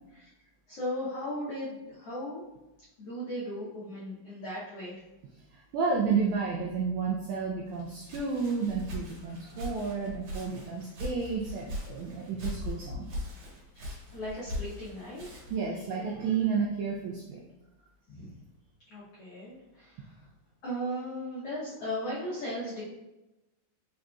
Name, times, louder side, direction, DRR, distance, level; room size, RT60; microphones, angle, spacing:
voice 1, 0.7-2.4 3.0-5.0 13.7-15.2 18.1-18.3 18.9-20.1 20.6-22.8, equal, 80° left, -8 dB, 1.3 m, -37 dB
voice 2, 5.5-13.1 15.5-17.4, right 5 dB, 90° right, -1 dB, 1.6 m, -31 dB
Walk footsteps, 7.7-15.7, left 1 dB, 60° right, 2.4 m, -40 dB
5.3 x 3.8 x 2.3 m, 0.98 s
omnidirectional pair, 4.0 m